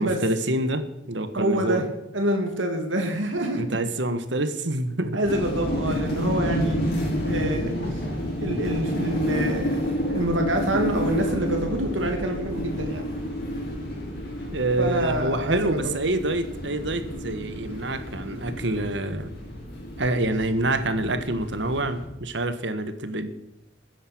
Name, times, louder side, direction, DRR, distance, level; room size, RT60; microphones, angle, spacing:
voice 1, 0.0-1.8 3.5-5.2 14.5-19.3 20.0-23.3, right 1 dB, 65° right, 10 dB, 1.7 m, -27 dB
voice 2, 1.3-1.8 2.1-3.6 5.1-6.8 7.2-7.7 8.4-9.8 10.1-13.0 14.8-16.0, right 1 dB, 85° right, 3 dB, 2.7 m, -26 dB
sound 1, 5.2-22.1, equal, 55° left, 6.5 m, -30 dB
21.5 x 10.0 x 6.3 m, 0.90 s
head